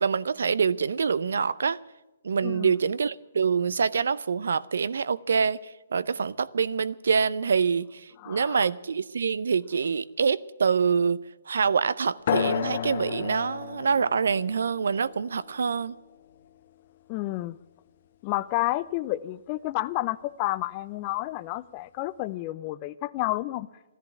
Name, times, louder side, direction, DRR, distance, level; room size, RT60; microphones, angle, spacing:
voice 1, 0.0-1.8 2.2-5.6 5.9-8.0 8.3-11.2 11.5-15.9, right 6 dB, 70° right, 0.6 m, -25 dB
voice 2, 2.4-2.7 8.2-8.7 17.1-17.6 18.2-23.7, left 17 dB, 35° left, 0.5 m, -30 dB
sound 1, 12.3-17.3, left 9 dB, 55° left, 1.0 m, -33 dB
13.5 x 11.0 x 8.7 m
hypercardioid pair, 135°, 0 cm